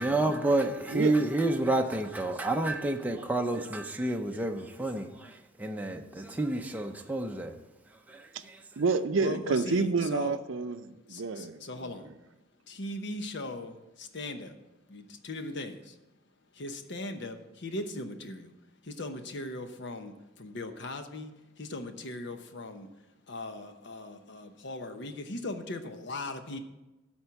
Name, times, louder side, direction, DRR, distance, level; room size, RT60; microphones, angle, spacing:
voice 1, 0.0-7.5, right 2 dB, 10° right, 0.6 m, -29 dB
voice 2, 0.9-1.3 3.5-3.6 8.8-11.9, right 4 dB, 75° right, 0.5 m, -29 dB
voice 3, 9.2-10.4 11.1-12.1 12.7-14.5 14.9-16.0 16.5-18.5 18.8-22.9 23.3-26.6, left 2 dB, 65° left, 0.9 m, -39 dB
12.5 x 4.4 x 7.0 m
head